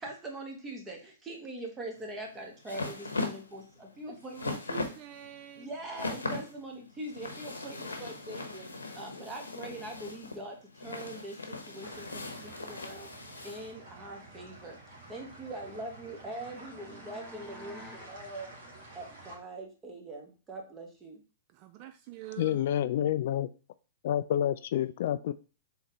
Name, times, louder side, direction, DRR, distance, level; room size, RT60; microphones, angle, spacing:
voice 1, 0.0-4.5 5.6-8.7 8.9-13.1 13.4-14.8 15.1-18.5 18.9-21.2, right 1 dB, 20° right, 1.5 m, -42 dB
sound 1, 2.0-13.7, left 3 dB, 90° left, 0.9 m, -39 dB
voice 2, 4.1-5.7 21.5-22.6, right 13 dB, 40° right, 0.4 m, -46 dB
sound 2, 11.8-19.4, right 2 dB, 60° right, 1.9 m, -50 dB
sound 3, 15.6-18.2, left 1 dB, 5° left, 1.1 m, -52 dB
voice 3, 22.4-23.5 24.0-25.3, left 11 dB, 55° left, 0.3 m, -28 dB
4.0 x 3.9 x 3.3 m
hypercardioid pair, 115°, 0 cm